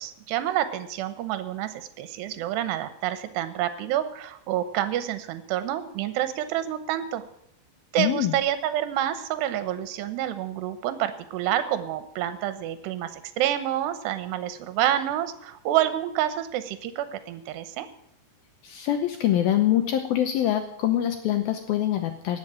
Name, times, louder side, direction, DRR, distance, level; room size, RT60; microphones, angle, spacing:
voice 1, 0.0-7.2 7.9-17.9, right 12 dB, 75° right, 11 dB, 3.0 m, -28 dB
voice 2, 8.0-8.3 18.6-22.4, left 12 dB, 75° left, 6 dB, 2.3 m, -24 dB
18.5 x 7.4 x 7.6 m, 0.74 s
omnidirectional pair, 5.2 m